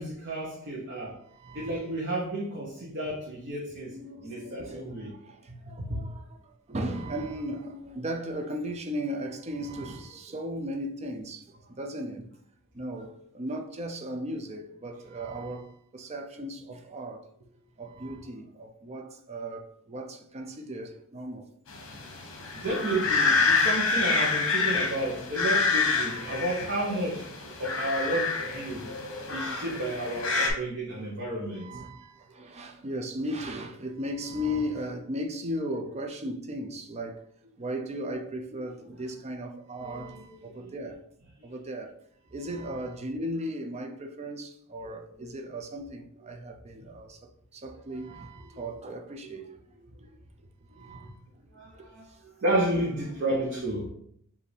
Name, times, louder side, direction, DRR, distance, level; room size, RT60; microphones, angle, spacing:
voice 1, 0.0-1.2 1.5-5.1 5.5-6.0 22.5-27.3 27.6-28.9 29.3-31.6 39.8-40.7 45.2-45.3 48.5-48.6 49.3-49.4 51.5-52.1 52.4-53.9, right 1 dB, 55° right, 0.9 m, -32 dB
voice 2, 1.3-1.9 3.9-6.4 6.7-12.3 12.7-17.2 17.8-21.5 23.4-23.8 26.0-26.5 30.0-30.2 31.0-37.2 37.6-41.0 41.4-41.9 42.3-47.2 47.5-49.5 50.7-51.2 52.7-52.9, equal, 30° right, 0.5 m, -36 dB
sound 1, 21.7-30.5, left 4 dB, 65° left, 0.9 m, -27 dB
5.0 x 2.7 x 3.3 m
head